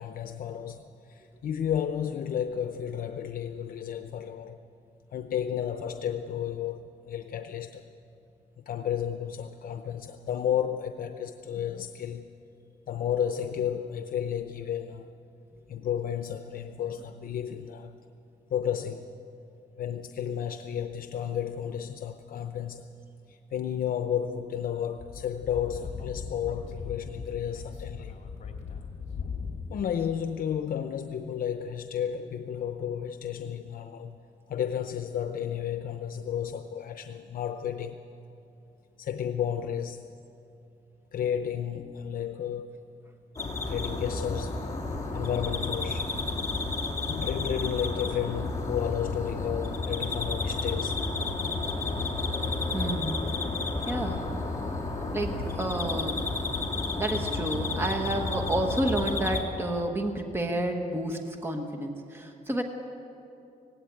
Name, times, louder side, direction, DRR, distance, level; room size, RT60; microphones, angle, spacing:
voice 1, 0.0-4.6 5.1-7.8 8.7-12.3 12.9-15.1 15.7-17.9 18.5-19.1 19.8-22.9 23.3-28.2 29.7-34.2 34.5-38.0 39.0-40.1 41.1-42.8 43.7-44.6 45.1-46.1 47.1-51.0, left 9 dB, 75° left, 0.7 m, -32 dB
Speech / Wind, 25.0-29.9, left 5 dB, 50° left, 2.1 m, -39 dB
sound 1, 43.4-59.4, left 3 dB, 20° left, 2.4 m, -31 dB
voice 2, 52.7-53.3 53.9-54.2 55.1-56.3 57.0-62.6, right 1 dB, 15° right, 1.2 m, -30 dB
17.5 x 16.5 x 9.2 m
wide cardioid pair, 165°, 15 cm